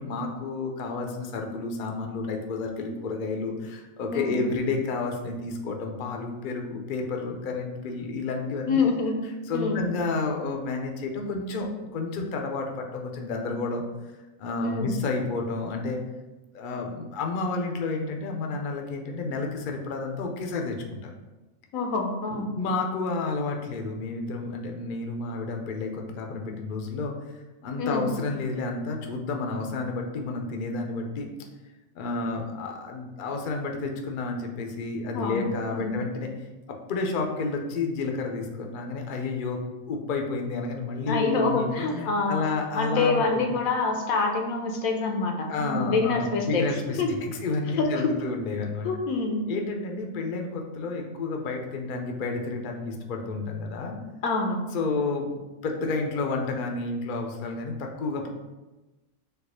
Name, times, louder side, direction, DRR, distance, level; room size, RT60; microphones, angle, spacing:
voice 1, 0.0-8.9 9.5-13.8 14.4-16.0 16.5-21.1 22.3-27.1 27.6-31.3 31.9-36.3 36.7-39.6 39.9-43.5 45.5-48.9 49.5-54.0 54.7-58.3, left 3 dB, 55° left, 2 dB, 0.6 m, -30 dB
voice 2, 8.7-9.3 9.5-9.8 14.6-15.0 21.7-22.5 27.8-28.1 35.1-36.0 41.1-42.5 42.8-46.7 47.0-47.1 47.8-48.1 48.8-49.4 54.2-54.6, left 3 dB, 85° left, 3 dB, 1.1 m, -26 dB
4.5 x 2.4 x 4.8 m, 1.1 s
omnidirectional pair, 1.4 m